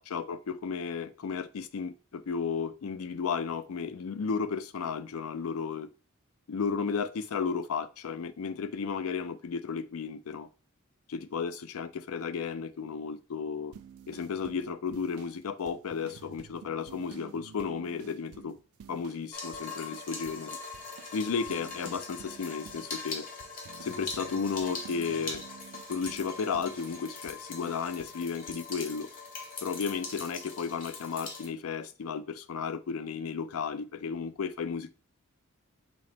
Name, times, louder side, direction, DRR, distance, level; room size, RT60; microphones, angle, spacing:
voice 1, 0.0-5.9 6.5-10.5 11.1-13.7 14.1-18.6 18.9-20.6 21.1-23.3 23.8-25.4 25.9-29.1 29.6-34.9, left 5 dB, 85° left, 0.4 m, -34 dB
sound 1, 13.7-19.3 19.5-20.5 20.7-28.2 28.5-28.9, right 8 dB, 85° right, 0.3 m, -51 dB
sound 2, 19.3-31.5, left 4 dB, 40° left, 1.0 m, -41 dB
4.0 x 2.8 x 3.3 m
head